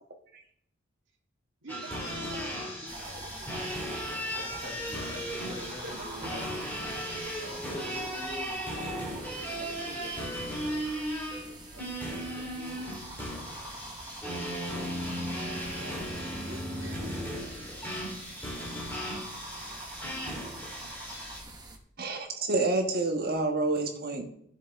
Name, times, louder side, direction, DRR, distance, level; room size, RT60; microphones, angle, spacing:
voice 1, 1.6-4.1 5.1-5.2 5.6-7.0 8.5-8.6 9.6-10.6 11.7-13.0 15.3-17.3, right 2 dB, 75° right, 0 dB, 2.0 m, -48 dB
sound 1, 1.7-21.4, equal, 10° left, 3.5 m, -36 dB
sound 2, 2.9-21.8, right 2 dB, 20° right, 1.1 m, -46 dB
voice 2, 4.3-10.1, left 1 dB, 65° left, -7 dB, 4.7 m, -45 dB
voice 3, 22.0-24.2, right 2 dB, 50° right, 3 dB, 1.3 m, -28 dB
15.0 x 7.2 x 3.6 m, 0.70 s
head